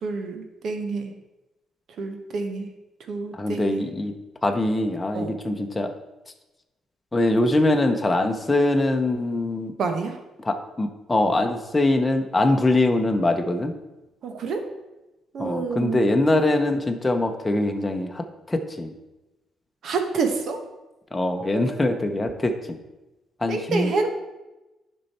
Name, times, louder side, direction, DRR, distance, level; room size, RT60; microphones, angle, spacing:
voice 1, 0.0-1.1 2.0-2.7 3.1-3.8 5.1-5.3 9.8-10.2 14.2-14.6 15.3-16.0 19.8-20.6 21.4-21.8 23.5-24.1, right 4 dB, 65° right, 5 dB, 1.3 m, -28 dB
voice 2, 3.3-4.1 4.4-5.9 7.1-9.7 10.4-13.7 15.4-18.9 21.1-22.8 23.4-23.9, left 2 dB, 15° left, 4 dB, 0.9 m, -23 dB
10.5 x 5.5 x 4.4 m, 1.0 s
cardioid pair, 90°, 0 cm